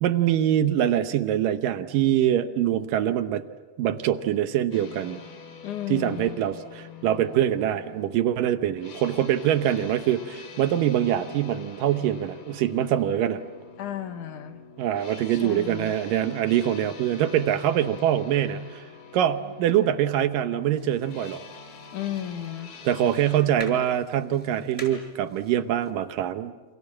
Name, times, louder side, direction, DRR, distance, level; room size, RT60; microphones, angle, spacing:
voice 1, 0.0-3.4 3.8-5.2 5.9-13.4 14.8-18.8 19.1-21.4 22.9-26.5, right 11 dB, 75° right, 10 dB, 2.5 m, -24 dB
sound 1, 4.7-23.4, left 5 dB, 80° left, 4.9 m, -46 dB
voice 2, 5.6-6.4 13.8-14.6 15.3-16.0 21.9-22.7, left 11 dB, 65° left, 8 dB, 2.7 m, -34 dB
sound 2, 20.8-25.9, equal, 10° right, 6.3 m, -47 dB
28.5 x 27.0 x 7.5 m, 1.3 s
omnidirectional pair, 4.1 m